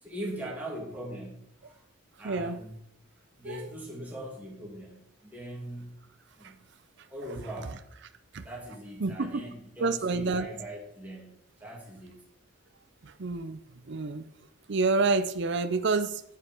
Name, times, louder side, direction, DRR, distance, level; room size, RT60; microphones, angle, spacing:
voice 1, 0.0-1.8 2.2-2.8 3.4-6.0 6.4-6.6 7.1-7.8 8.4-12.2, right 1 dB, 10° right, -4 dB, 2.5 m, -41 dB
voice 2, 2.2-2.6 3.4-3.7 6.4-6.5 8.3-8.5 9.0-9.4 9.8-10.5 13.0-14.3 14.7-16.2, right 3 dB, 55° right, 10 dB, 0.5 m, -28 dB
9.1 x 7.6 x 4.5 m, 0.75 s
head